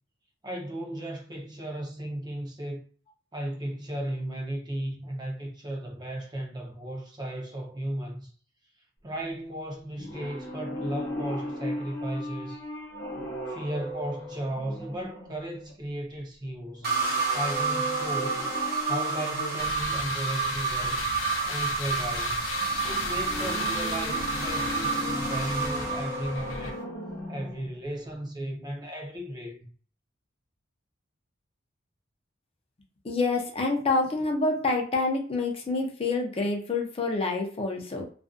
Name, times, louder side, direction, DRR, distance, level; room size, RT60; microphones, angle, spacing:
voice 1, 0.4-2.8 3.3-8.3 9.0-12.6 13.5-16.9 17.3-18.5 18.8-21.1 21.5-22.5 22.8-26.8 27.3-29.7, right 1 dB, 20° right, 0.5 m, -35 dB
sound 1, 10.0-15.7 16.8-19.8 22.6-27.8 28.1-28.2, left 1 dB, 60° left, 0.9 m, -36 dB
sound 2, 16.8-26.8, right 4 dB, 50° right, 0.8 m, -30 dB
sound 3, 19.6-26.7, left 4 dB, 90° left, 0.5 m, -36 dB
voice 2, 33.0-38.1, left 3 dB, 30° left, 0.5 m, -27 dB
2.4 x 2.1 x 2.4 m
head